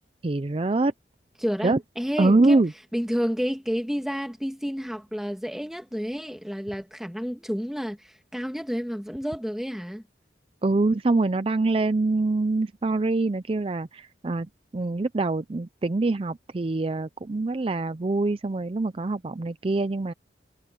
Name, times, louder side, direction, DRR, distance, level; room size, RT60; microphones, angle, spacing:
voice 1, 0.2-0.9 1.6-1.8 2.2-2.7 10.6-14.5 14.7-20.1, right 2 dB, 30° right, 0.5 m, -24 dB
voice 2, 1.4-2.6 2.9-10.0, equal, ahead, 1.6 m, -30 dB
head